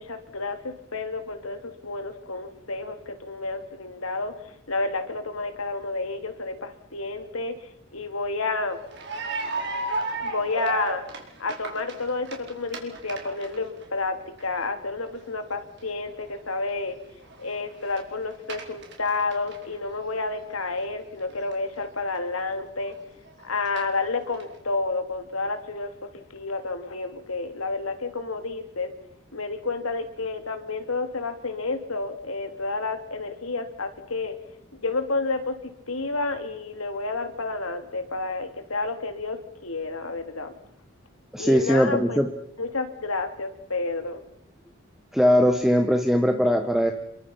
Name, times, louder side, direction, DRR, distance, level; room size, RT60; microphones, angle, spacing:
voice 1, 0.0-8.8 10.2-11.0 11.4-17.0 17.4-23.0 23.4-28.9 29.3-34.4 34.8-40.5 41.4-42.2 42.6-44.2, left 3 dB, 85° left, 8 dB, 2.9 m, -30 dB
sound 1, 8.8-13.8 14.2-14.4 14.8-14.9 15.4-15.5 15.8-15.9 16.3-16.6 16.8-16.9 17.1-18.0 18.3-20.1 20.3-20.4 20.7-20.8 21.5-21.6 22.2-22.3 22.8-22.9 23.3-24.4, right 2 dB, 55° right, 4.7 m, -33 dB
voice 2, 41.3-42.3 45.1-46.9, equal, ahead, 5 dB, 1.3 m, -20 dB
29.0 x 22.5 x 5.8 m, 0.79 s
head